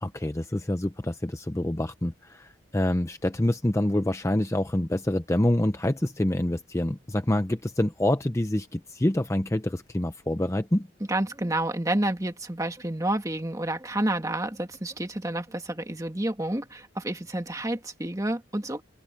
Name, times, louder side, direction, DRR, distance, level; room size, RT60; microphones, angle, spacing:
voice 1, 0.0-10.9, left 1 dB, 15° left, 0.6 m, -26 dB
voice 2, 11.1-18.8, right 1 dB, 15° right, 1.8 m, -29 dB
open air
head